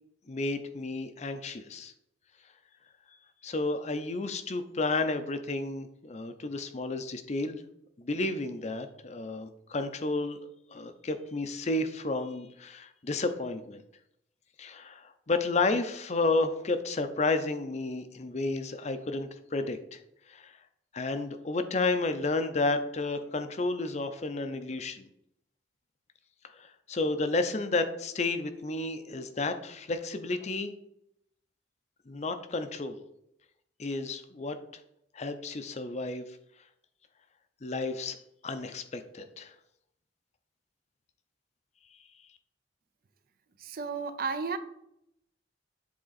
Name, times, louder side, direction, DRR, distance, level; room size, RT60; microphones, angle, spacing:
voice 1, 0.3-1.9 3.4-7.6 8.0-10.4 10.7-13.8 14.6-20.0 20.3-20.6 20.9-25.1 26.5-30.7 32.1-33.0 33.8-34.6 35.1-36.2 37.6-38.2 38.4-39.5, left 3 dB, 40° left, 9 dB, 0.5 m, -31 dB
voice 2, 43.6-44.6, right 5 dB, 55° right, 10 dB, 0.5 m, -33 dB
7.7 x 3.6 x 4.0 m, 0.78 s
head